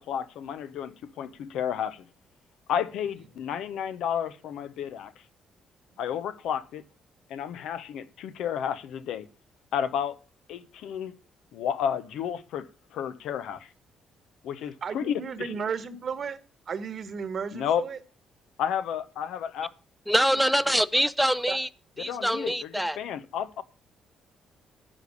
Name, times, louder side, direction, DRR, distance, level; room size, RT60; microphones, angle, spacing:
voice 1, 0.0-2.0 2.7-5.1 6.0-6.8 7.3-9.3 9.7-10.2 10.5-11.1 11.5-12.7 12.9-13.7 14.4-15.6 17.5-17.8 18.6-19.7 22.0-23.6, left 8 dB, 80° left, 0.8 m, -31 dB
voice 2, 14.8-16.4 16.7-18.0 21.5-21.6, right 6 dB, 50° right, 1.2 m, -33 dB
voice 3, 20.1-21.7 22.0-23.0, equal, ahead, 0.5 m, -24 dB
10.0 x 5.3 x 6.7 m
cardioid pair, 90°, 0 cm